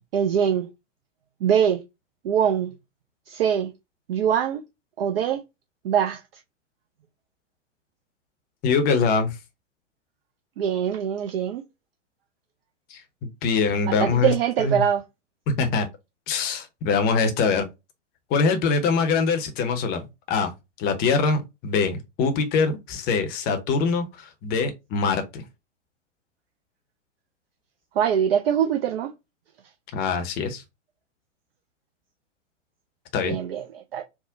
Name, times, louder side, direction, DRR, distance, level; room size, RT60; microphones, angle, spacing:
voice 1, 0.1-0.7 1.4-1.8 2.2-2.7 3.3-3.7 4.1-4.6 5.0-5.4 5.8-6.2 10.6-11.6 13.8-15.0 28.0-29.1 33.2-34.0, right 8 dB, 50° right, 0.5 m, -23 dB
voice 2, 8.6-9.4 12.9-14.3 14.6-14.8 15.6-15.9 16.3-17.7 18.3-20.5 20.8-25.4 29.9-30.6 33.1-33.4, left 5 dB, 25° left, 0.7 m, -23 dB
3.6 x 2.1 x 3.7 m
figure-of-eight pair, 110°, 37 cm